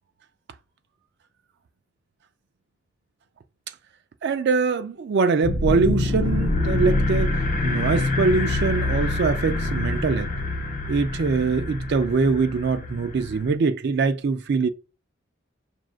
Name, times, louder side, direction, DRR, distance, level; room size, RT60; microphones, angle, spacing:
voice 1, 4.2-10.3 10.9-14.7, right 4 dB, 50° right, 0.3 m, -23 dB
sound 1, 5.4-13.5, left 2 dB, 40° left, 0.6 m, -25 dB
6.0 x 2.4 x 2.4 m
head